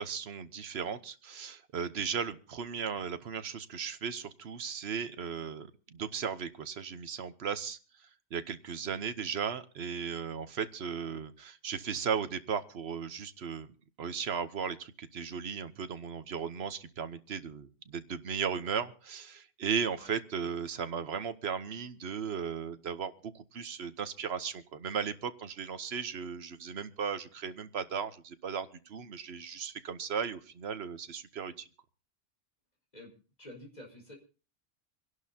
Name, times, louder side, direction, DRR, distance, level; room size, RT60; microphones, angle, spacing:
voice 1, 0.0-7.8 8.3-13.7 14.0-31.7, right 6 dB, 60° right, 11 dB, 1.1 m, -36 dB
voice 2, 33.4-34.1, left 1 dB, 35° left, 1 dB, 4.6 m, -50 dB
26.5 x 11.5 x 2.8 m, 0.36 s
omnidirectional pair, 1.2 m